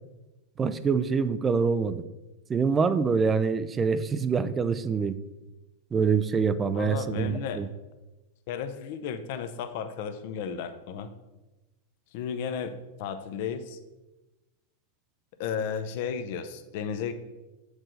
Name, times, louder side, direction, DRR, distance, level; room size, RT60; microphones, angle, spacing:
voice 1, 0.6-2.0 2.5-5.2 5.9-7.7, right 5 dB, 20° right, 13 dB, 0.4 m, -25 dB
voice 2, 6.7-7.6 8.5-11.1 12.1-12.7 13.0-13.8 15.4-17.1, left 7 dB, 60° left, 9 dB, 0.6 m, -33 dB
7.6 x 4.7 x 3.8 m, 1.1 s
supercardioid pair, 130°, 0 cm